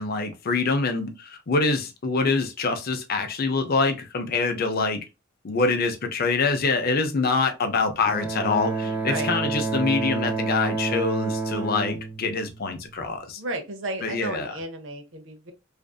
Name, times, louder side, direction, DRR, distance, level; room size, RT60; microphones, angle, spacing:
voice 1, 0.0-5.0 5.4-13.4 14.0-14.5, left 4 dB, 50° left, 0.5 m, -25 dB
Bowed string instrument, 8.1-13.1, right 3 dB, 5° right, 0.4 m, -29 dB
voice 2, 8.8-9.3 13.4-15.5, right 2 dB, 70° right, 0.6 m, -33 dB
2.5 x 2.4 x 2.2 m
head